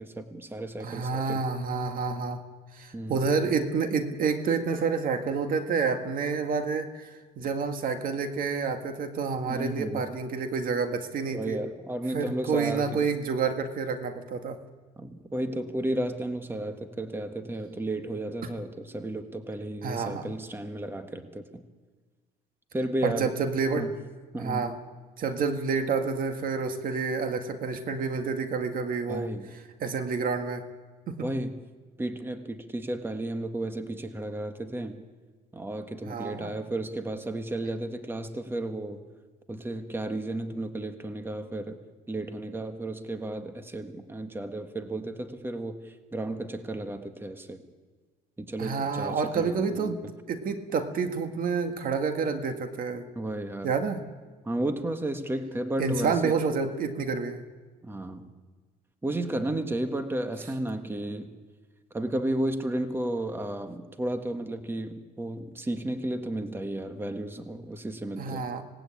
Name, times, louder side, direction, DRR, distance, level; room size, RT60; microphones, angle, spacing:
voice 1, 0.0-1.4 2.9-3.4 9.5-10.1 11.3-13.1 15.0-21.6 22.7-23.3 23.7-23.9 24.3-24.7 29.1-29.5 31.2-31.6 32.0-35.0 35.5-39.0 39.5-41.8 42.1-47.6 48.4-49.9 53.1-53.7 54.4-56.4 57.8-58.3 59.0-61.3 61.9-68.5, right 1 dB, 15° right, 7 dB, 1.6 m, -33 dB
voice 2, 0.8-2.4 2.7-11.6 12.1-14.6 19.8-20.3 23.0-23.9 24.4-24.8 25.2-30.6 31.1-31.3 36.1-36.5 48.6-50.0 50.3-53.1 53.6-54.0 55.8-57.4 68.2-68.6, right 5 dB, 55° right, 7 dB, 2.0 m, -29 dB
26.0 x 18.5 x 8.7 m, 1.4 s
cardioid pair, 110°, 17 cm